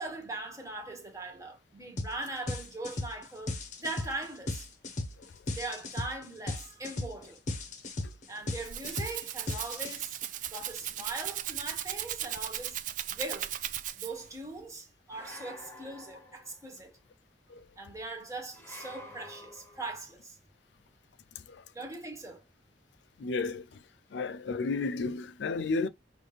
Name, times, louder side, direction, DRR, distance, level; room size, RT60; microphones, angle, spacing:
voice 1, 0.0-4.7 5.5-7.4 8.3-10.2 10.5-12.8 13.1-13.5 14.0-17.0 17.8-20.4 21.7-22.4, right 2 dB, 20° right, 1.4 m, -40 dB
sound 1, 2.0-2.2 2.5-10.3, left 2 dB, 45° left, 0.9 m, -36 dB
Rattle (instrument), 8.4-14.3, right 12 dB, 45° right, 0.4 m, -37 dB
sound 2, 15.1-16.8 18.5-20.0, left 1 dB, 15° left, 1.2 m, -49 dB
voice 2, 23.2-23.7 24.1-25.9, left 3 dB, 75° left, 0.4 m, -32 dB
5.7 x 2.6 x 3.4 m
head